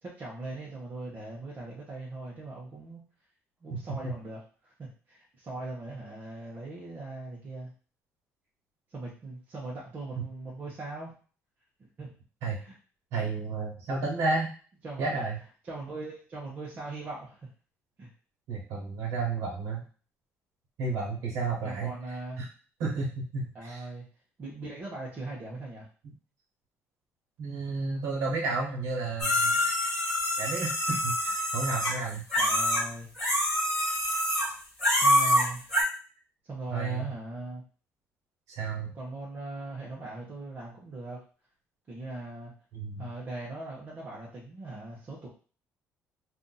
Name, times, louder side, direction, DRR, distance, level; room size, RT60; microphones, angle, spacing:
voice 1, 0.0-3.0 3.6-7.7 8.9-11.1 12.0-12.1 12.6-12.8 14.8-15.3 15.6-17.4 18.0-18.1 21.6-22.4 23.5-24.0 24.4-25.9 32.4-33.1 35.0-35.7 36.4-37.6 38.8-41.2 41.9-42.5 43.0-45.3, right 2 dB, 30° right, -5 dB, 0.8 m, -40 dB
voice 2, 13.1-14.5 15.0-15.4 18.5-19.8 20.8-21.9 22.4-22.5 22.8-23.8 27.4-29.6 30.4-32.2 36.7-37.1 38.5-38.9 42.7-43.1, right 3 dB, 85° right, -4 dB, 1.2 m, -32 dB
sound 1, 29.2-32.8 33.1-34.5 34.8-35.8, left 1 dB, 10° left, 1.3 m, -26 dB
2.7 x 2.5 x 3.8 m, 0.38 s
cardioid pair, 160°, 5 cm